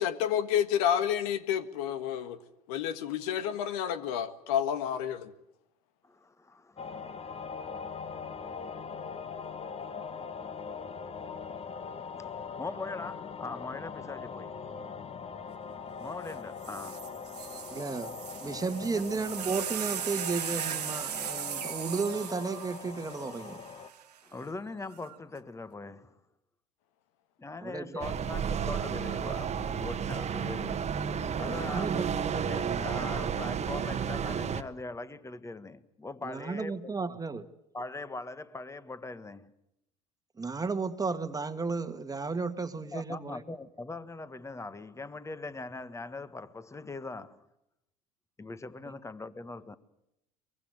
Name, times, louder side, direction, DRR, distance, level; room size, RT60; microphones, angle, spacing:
voice 1, 0.0-2.4 2.7-5.3, left 9 dB, 70° left, 1.7 m, -30 dB
voice 2, 6.0-7.3 12.6-14.5 16.0-17.1 18.9-19.0 24.2-26.2 27.4-30.8 31.4-36.8 37.1-37.2 37.7-39.5 42.9-47.5 48.4-49.8, left 3 dB, 15° left, 1.6 m, -41 dB
sound 1, 6.8-23.9, left 6 dB, 30° left, 1.7 m, -41 dB
sound 2, 16.3-16.4 16.6-24.0 24.9-25.4, right 10 dB, 90° right, 1.4 m, -38 dB
voice 3, 17.7-23.6 27.6-28.2 31.5-32.0 36.2-37.4 40.4-43.4 48.9-49.0, right 4 dB, 20° right, 1.8 m, -34 dB
sound 3, 28.0-34.6, right 7 dB, 35° right, 1.5 m, -32 dB
23.5 x 22.5 x 7.9 m
hypercardioid pair, 75°, 20 cm